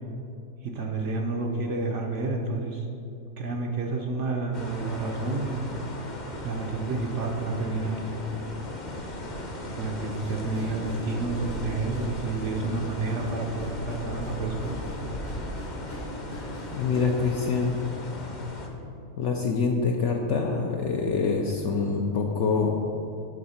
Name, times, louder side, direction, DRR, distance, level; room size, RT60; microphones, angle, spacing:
voice 1, 0.6-2.9 3.4-5.7 6.0-8.2 9.7-14.8, right 3 dB, 65° right, 0 dB, 0.9 m, -30 dB
sound 1, 4.5-18.7, left 1 dB, 40° left, 0.8 m, -37 dB
sound 2, 10.1-17.3, left 1 dB, 20° left, 0.4 m, -44 dB
voice 2, 16.7-17.8 19.2-22.8, left 4 dB, 65° left, 1 dB, 0.8 m, -25 dB
8.5 x 3.6 x 5.6 m, 2.7 s
omnidirectional pair, 1.5 m